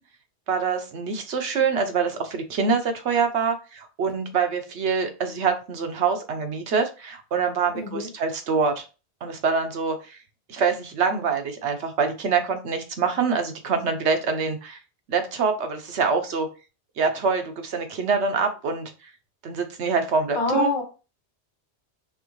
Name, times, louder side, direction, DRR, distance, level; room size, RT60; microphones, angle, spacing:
voice 1, 0.5-8.8 9.2-10.2 10.5-14.8 15.1-16.5 17.0-18.9 19.4-20.7, right 5 dB, 80° right, 1.1 m, -25 dB
voice 2, 7.7-8.1 20.3-20.8, left 3 dB, 50° left, 1.3 m, -25 dB
4.7 x 3.5 x 3.0 m
omnidirectional pair, 1.1 m